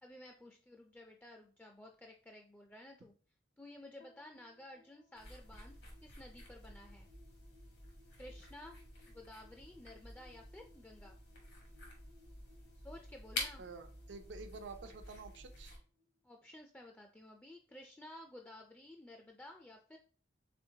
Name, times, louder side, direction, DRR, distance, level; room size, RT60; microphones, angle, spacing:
voice 1, 0.0-3.1 3.6-7.1 8.2-8.8 9.1-11.2 12.8-13.6 16.2-20.0, left 1 dB, 10° left, 2 dB, 0.3 m, -54 dB
sound 1, 4.0-16.5, left 3 dB, 50° left, 0.6 m, -67 dB
sound 2, 5.1-15.8, left 2 dB, 75° left, 1.4 m, -49 dB
voice 2, 13.6-15.8, right 4 dB, 80° right, 8 dB, 0.5 m, -49 dB
4.2 x 3.7 x 2.7 m, 0.40 s
head